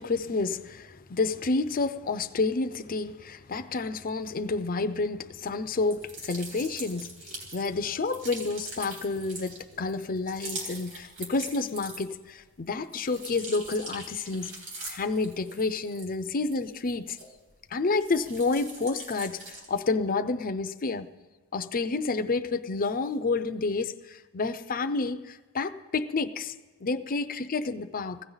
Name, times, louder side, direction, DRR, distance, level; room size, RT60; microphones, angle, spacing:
voice 1, 0.0-14.5 14.9-17.2 17.7-21.1 21.5-26.5 26.8-28.2, left 3 dB, 40° left, 0.6 m, -29 dB
sound 1, 5.8-12.3 12.7-17.6 17.9-19.8, right 2 dB, 60° right, 4.1 m, -42 dB
20.5 x 15.5 x 4.0 m
head